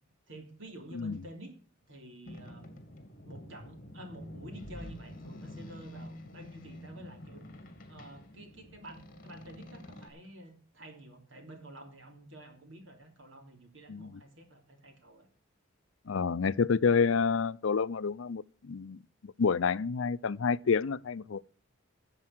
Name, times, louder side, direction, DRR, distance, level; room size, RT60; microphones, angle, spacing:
voice 1, 0.3-1.6 1.9-2.7 3.2-7.4 7.9-15.3, right 1 dB, 70° right, 3.5 m, -49 dB
Boat Water vehicle, 2.3-10.1, left 1 dB, 45° left, 2.7 m, -47 dB
voice 2, 16.1-21.4, left 5 dB, 80° left, 0.5 m, -29 dB
13.5 x 7.5 x 6.1 m
head